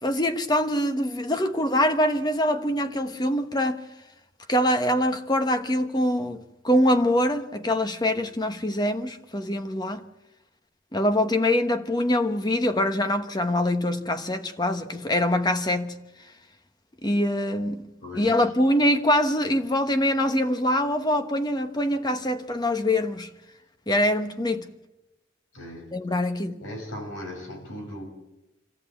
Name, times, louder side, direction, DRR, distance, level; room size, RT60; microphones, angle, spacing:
voice 1, 0.0-3.8 4.5-10.0 10.9-15.9 17.0-17.8 18.1-23.3 23.9-24.7 25.9-26.6, left 1 dB, 20° left, 1.2 m, -24 dB
voice 2, 18.0-18.5 25.5-25.9 26.6-28.1, left 1 dB, 75° left, 5.7 m, -38 dB
26.5 x 14.5 x 8.6 m
head